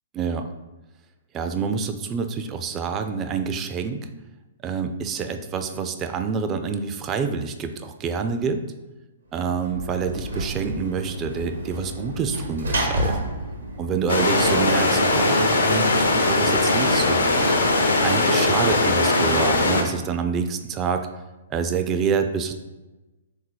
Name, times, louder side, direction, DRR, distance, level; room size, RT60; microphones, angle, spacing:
voice 1, 0.1-0.5 1.3-4.1 4.6-8.6 9.3-13.2 13.8-17.5 18.0-21.1 21.5-22.5, right 6 dB, 25° right, 7 dB, 0.4 m, -27 dB
Sliding door / Slam, 9.4-14.8, right 1 dB, 75° right, 0.8 m, -30 dB
sound 1, 14.1-19.8, left 2 dB, 70° left, 0.7 m, -20 dB
3.7 x 2.7 x 4.6 m, 1.1 s
figure-of-eight pair, 115°, 0 cm